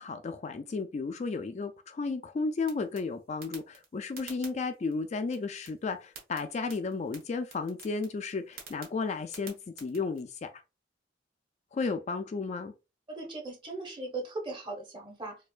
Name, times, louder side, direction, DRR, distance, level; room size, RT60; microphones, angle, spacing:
voice 1, 0.0-10.5 11.7-12.7, left 4 dB, 35° left, 0.3 m, -33 dB
sound 1, 2.6-10.2, right 5 dB, 55° right, 1.2 m, -52 dB
voice 2, 13.1-15.4, right 2 dB, 25° right, 1.0 m, -38 dB
4.3 x 2.5 x 2.4 m
head